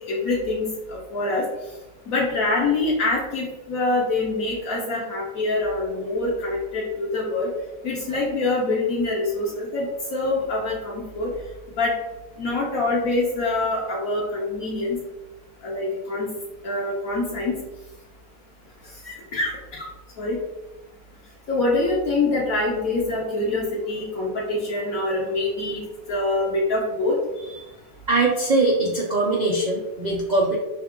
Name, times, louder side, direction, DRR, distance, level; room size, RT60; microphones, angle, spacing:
voice 1, 0.0-0.7 1.1-1.4 2.1-7.5 7.8-11.3 11.8-11.9 12.4-15.0 15.6-16.3 16.6-17.6 19.0-19.9 20.2-20.4 21.5-25.8 26.1-27.1, left 2 dB, 65° left, -4 dB, 1.2 m, -25 dB
voice 2, 28.1-30.6, right 2 dB, 90° right, -2 dB, 0.3 m, -21 dB
5.4 x 2.4 x 3.6 m, 1.0 s
omnidirectional pair, 1.6 m